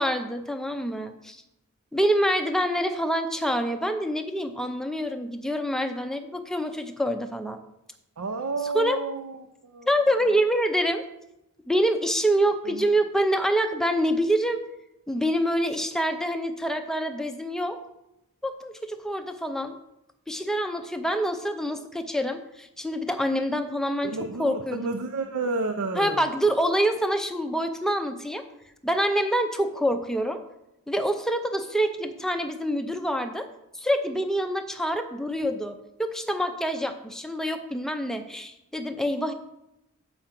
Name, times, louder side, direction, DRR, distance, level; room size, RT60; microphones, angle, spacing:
voice 1, 0.0-1.4 1.9-7.6 8.7-9.0 9.9-11.0 11.7-14.6 15.1-17.8 18.4-19.8 20.3-24.1 24.4-25.0 26.0-28.4 28.8-30.4 30.9-33.5 33.7-39.3, equal, ahead, 6 dB, 0.5 m, -26 dB
voice 2, 8.2-10.1 12.6-12.9 24.0-26.3, right 3 dB, 75° right, 5 dB, 0.6 m, -31 dB
7.7 x 4.9 x 5.8 m, 0.88 s
head